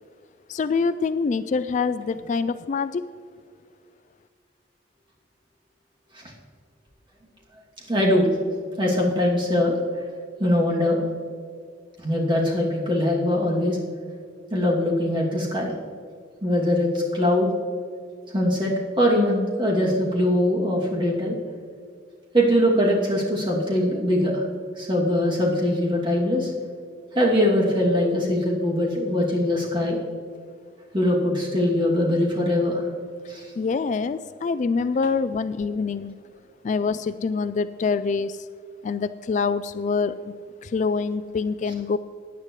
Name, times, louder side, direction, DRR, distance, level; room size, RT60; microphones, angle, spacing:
voice 1, 0.5-3.0 33.6-36.2 36.6-38.5 38.8-42.0, left 4 dB, 40° left, 13 dB, 0.3 m, -25 dB
voice 2, 7.9-8.3 8.8-9.8 10.4-11.0 12.0-13.8 14.5-15.7 16.4-17.5 18.3-21.4 22.3-24.4 24.8-26.5 27.1-30.0 30.9-32.8 33.3-33.5, left 1 dB, 25° right, -3 dB, 2.6 m, -22 dB
17.0 x 9.8 x 3.2 m, 2.2 s
head